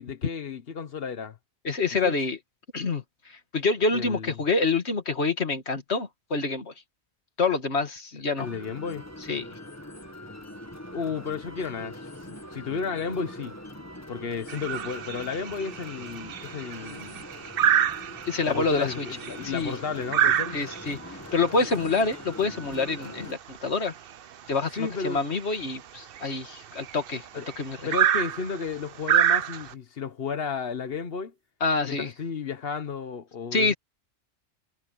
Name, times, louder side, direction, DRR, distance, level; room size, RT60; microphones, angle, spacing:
voice 1, 0.0-1.4 2.0-2.1 3.9-4.3 8.4-9.0 10.9-12.0 12.5-13.5 14.1-17.2 18.5-20.5 24.8-25.2 27.3-27.5 27.8-31.3 31.8-33.7, left 5 dB, 65° left, 1.3 m, -33 dB
voice 2, 1.6-2.4 2.7-6.7 7.4-8.5 9.3-9.6 18.3-19.1 19.4-19.8 20.5-23.9 24.5-27.3 27.6-27.9 31.6-32.1 33.5-33.7, left 3 dB, 80° left, 2.2 m, -27 dB
sound 1, 8.4-23.3, left 1 dB, 15° left, 1.9 m, -43 dB
sound 2, 14.5-29.7, right 10 dB, 60° right, 0.8 m, -28 dB
omnidirectional pair, 1.1 m